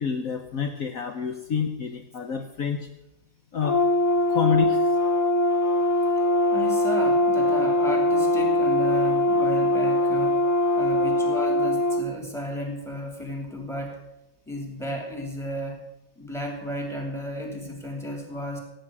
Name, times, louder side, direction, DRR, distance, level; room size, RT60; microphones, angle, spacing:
voice 1, 0.0-2.9 3.5-3.8 4.3-5.0, left 6 dB, 60° left, 6 dB, 1.3 m, -27 dB
Brass instrument, 3.6-12.0, left 1 dB, 25° left, 0.4 m, -22 dB
voice 2, 6.5-10.4 10.7-14.0 14.5-15.8 16.2-18.6, equal, ahead, 2 dB, 3.0 m, -33 dB
17.0 x 9.1 x 6.2 m, 0.90 s
omnidirectional pair, 1.7 m